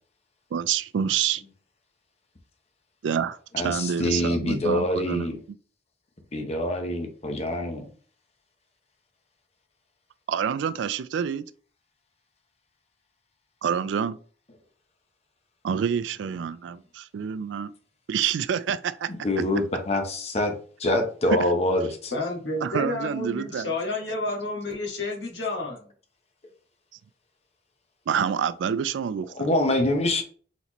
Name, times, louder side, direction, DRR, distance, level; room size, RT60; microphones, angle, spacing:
voice 1, 0.5-1.4 3.0-5.4 10.3-11.4 13.6-14.2 15.6-17.7 18.1-19.1 22.6-23.7 28.1-29.3, right 8 dB, 75° right, 0.3 m, -27 dB
voice 2, 3.5-5.4 6.3-7.9 19.2-20.5 20.8-22.1 29.4-30.2, left 1 dB, 35° left, 0.9 m, -25 dB
voice 3, 22.1-25.9, left 2 dB, 65° left, 1.5 m, -30 dB
4.1 x 4.1 x 3.0 m
head